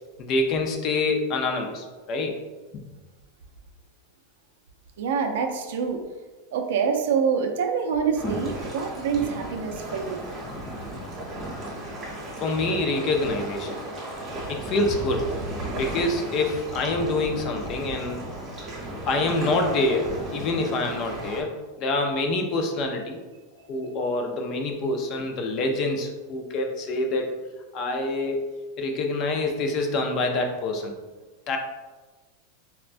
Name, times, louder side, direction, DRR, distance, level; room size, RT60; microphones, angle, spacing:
voice 1, 0.2-2.4 2.7-2.8 12.4-13.8 14.5-15.3 15.8-18.3 19.1-23.2 23.7-27.4 27.7-28.4 28.8-30.9 31.5-31.6, left 2 dB, 30° left, 4 dB, 0.4 m, -26 dB
voice 2, 5.0-6.0 6.5-10.2, right 6 dB, 70° right, 4 dB, 0.4 m, -26 dB
sound 1, 8.1-21.4, right 1 dB, 15° right, 0.9 m, -34 dB
4.3 x 2.1 x 2.4 m, 1.3 s
supercardioid pair, 170°, 0 cm